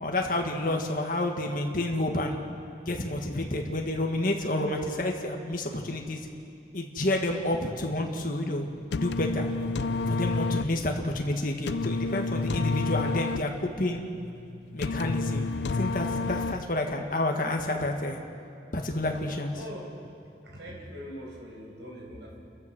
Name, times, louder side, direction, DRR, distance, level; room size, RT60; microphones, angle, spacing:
voice 1, 0.0-2.4 2.9-6.2 6.7-8.7 8.9-9.5 10.0-14.0 14.7-15.5 15.7-18.2 18.7-19.5, left 1 dB, 50° left, 2 dB, 1.9 m, -29 dB
sound 1, 8.7-16.9, left 3 dB, 70° left, 0.5 m, -30 dB
voice 2, 19.5-20.0 20.4-22.4, equal, 75° right, -2 dB, 5.8 m, -42 dB
29.5 x 14.5 x 6.2 m, 2.4 s
head